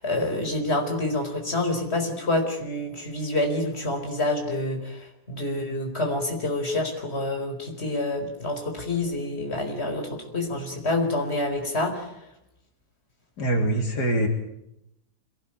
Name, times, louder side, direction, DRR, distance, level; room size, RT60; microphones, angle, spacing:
voice 1, 0.0-12.2, left 2 dB, 40° left, 3 dB, 5.0 m, -27 dB
voice 2, 13.4-14.3, right 1 dB, 85° left, 3 dB, 3.8 m, -23 dB
26.0 x 18.5 x 9.1 m, 0.82 s
omnidirectional pair, 1.7 m